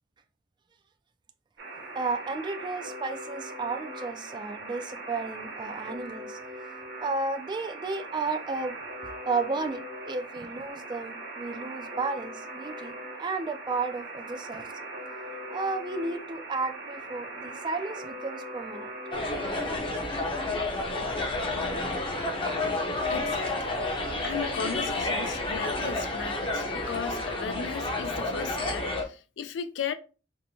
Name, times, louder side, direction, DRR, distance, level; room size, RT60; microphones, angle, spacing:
Alarm, 1.6-19.8, right 2 dB, 60° right, 0.9 m, -40 dB
voice 1, 1.9-6.4 7.0-12.9 13.2-14.7 15.5-18.9, right 3 dB, 25° right, 0.3 m, -33 dB
sound 1, 19.1-29.0, left 2 dB, 30° left, 0.7 m, -30 dB
voice 2, 23.1-23.7 24.2-29.9, left 6 dB, 75° left, 0.4 m, -36 dB
4.4 x 2.1 x 2.7 m
head